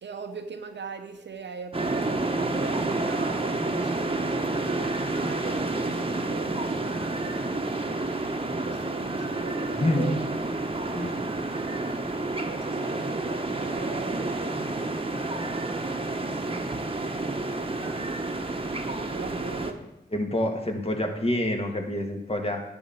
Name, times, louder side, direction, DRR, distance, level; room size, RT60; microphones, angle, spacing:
voice 1, 0.0-10.2 10.8-15.1 15.4-17.5 18.8-19.9, right 5 dB, 75° right, 0.8 m, -42 dB
sound 1, 1.7-19.7, right 2 dB, 30° right, 1.1 m, -29 dB
voice 2, 20.1-22.6, left 1 dB, 30° left, 2.1 m, -27 dB
10.5 x 4.5 x 8.0 m
cardioid pair, 45°, 19 cm